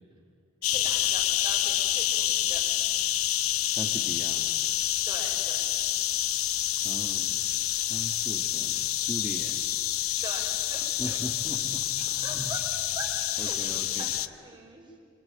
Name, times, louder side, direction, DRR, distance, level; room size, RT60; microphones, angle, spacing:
sound 1, 0.6-14.3, left 13 dB, 85° left, 0.8 m, -28 dB
voice 1, 0.6-2.6 5.0-5.7 10.2-11.2 12.2-12.6 12.9-15.0, right 2 dB, 25° right, 0 dB, 4.9 m, -42 dB
voice 2, 3.7-4.5 6.8-7.4 7.8-9.6 11.0-12.5 13.4-14.4, equal, ahead, -2 dB, 1.7 m, -40 dB
26.0 x 25.5 x 8.9 m, 2.2 s
head